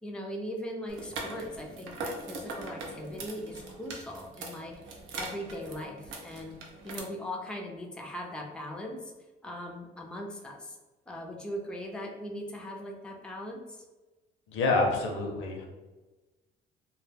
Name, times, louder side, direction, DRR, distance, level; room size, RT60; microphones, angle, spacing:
voice 1, 0.0-4.8 5.2-6.6 6.8-9.1 9.4-10.8 11.1-13.8, equal, 5° left, 0 dB, 0.4 m, -39 dB
sound 1, 0.9-7.0, right 2 dB, 75° right, 0.5 m, -41 dB
voice 2, 14.5-15.7, left 3 dB, 80° left, 1 dB, 0.6 m, -27 dB
2.2 x 2.1 x 3.3 m, 1.2 s
cardioid pair, 90°, 20 cm